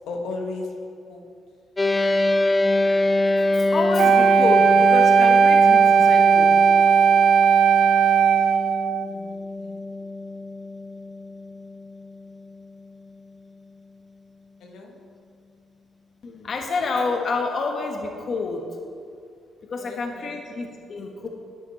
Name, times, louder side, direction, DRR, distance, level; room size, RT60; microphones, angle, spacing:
voice 1, 0.1-0.7 1.1-1.2 9.0-9.8 14.6-14.9 19.8-20.3, left 3 dB, 85° left, 1 dB, 1.3 m, -35 dB
sound 1, 1.8-13.3, left 2 dB, 20° left, 0.9 m, -24 dB
voice 2, 3.4-6.6 16.2-18.7 19.7-21.3, left 3 dB, 50° left, 2 dB, 1.2 m, -28 dB
Wind instrument woodwind instrument, 4.0-9.1, right 7 dB, 65° right, 0.3 m, -17 dB
12.0 x 8.7 x 4.3 m, 2.3 s
cardioid pair, 90°, 0 cm